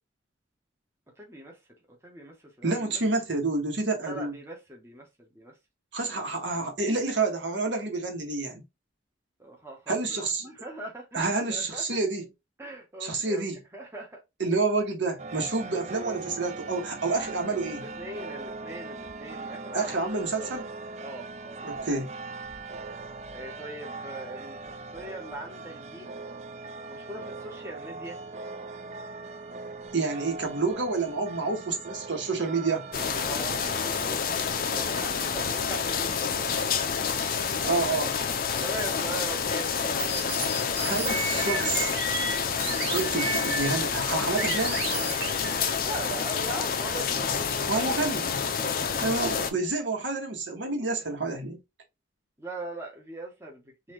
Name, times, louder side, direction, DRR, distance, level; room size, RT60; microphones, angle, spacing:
voice 1, 1.2-1.6 2.0-3.0 4.0-5.5 9.4-11.8 12.6-13.5 13.7-14.2 15.6-15.7 17.7-20.5 21.0-21.6 23.3-24.6 24.9-26.1 26.9-28.2 33.1-36.5 38.6-40.7 45.8-48.0 51.0-51.2 52.4-53.9, right 1 dB, 15° right, 0.9 m, -41 dB
voice 2, 2.6-4.3 5.9-8.6 9.9-10.5 11.1-12.2 13.0-13.6 14.4-17.8 19.7-20.6 21.6-22.1 29.9-32.8 37.6-38.1 40.8-41.9 42.9-44.8 47.7-48.4 49.0-51.6, right 3 dB, 80° right, 1.2 m, -28 dB
sound 1, 15.2-34.1, right 3 dB, 35° right, 0.3 m, -40 dB
sound 2, 32.9-49.5, left 6 dB, 50° left, 0.5 m, -28 dB
sound 3, 40.0-43.9 44.4-45.7, right 2 dB, 60° right, 1.9 m, -33 dB
3.9 x 2.6 x 3.0 m
head